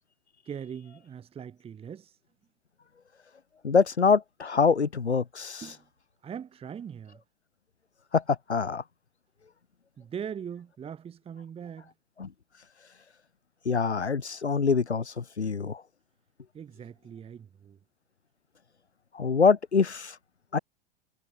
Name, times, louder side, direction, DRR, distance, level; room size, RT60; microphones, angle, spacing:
voice 1, 0.4-2.2 5.6-5.8 6.2-7.2 10.0-11.9 16.5-17.8, right 8 dB, 15° right, 1.7 m, -41 dB
voice 2, 3.6-5.6 8.1-8.8 12.2-12.3 13.7-15.8 19.1-20.2 20.5-20.6, left 5 dB, 85° left, 0.9 m, -25 dB
figure-of-eight pair, 95°, 33 cm